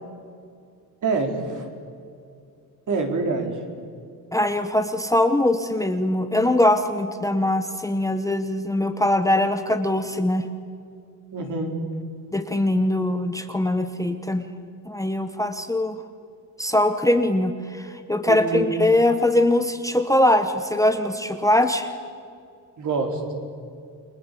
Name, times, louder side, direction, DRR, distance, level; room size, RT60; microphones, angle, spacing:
voice 1, 1.0-1.7 2.9-3.5 11.3-11.7 18.3-18.7 22.8-23.4, right 3 dB, 55° right, 3 dB, 4.5 m, -26 dB
voice 2, 4.3-10.5 12.3-14.4 14.9-16.0 16.6-21.9, left 1 dB, 10° left, 7 dB, 1.0 m, -22 dB
30.0 x 23.0 x 8.5 m, 2.4 s
wide cardioid pair, 165°, 37 cm